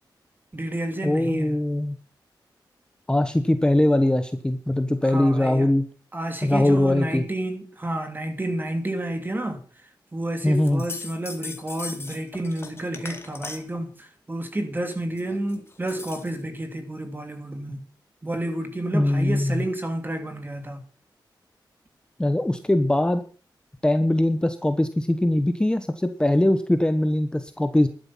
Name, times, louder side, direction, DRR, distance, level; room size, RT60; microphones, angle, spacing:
voice 1, 0.5-1.5 5.0-5.7 6.1-9.6 10.1-17.8 18.2-20.8, right 1 dB, 25° right, 2.8 m, -30 dB
voice 2, 1.0-2.0 3.1-5.9 6.4-7.2 10.4-10.8 18.9-19.6 22.2-23.2 23.8-27.9, left 1 dB, 10° left, 1.2 m, -21 dB
sound 1, 10.4-13.8 14.9-16.4, left 3 dB, 30° left, 2.1 m, -39 dB
12.0 x 11.5 x 5.8 m
wide cardioid pair, 90°, 8 cm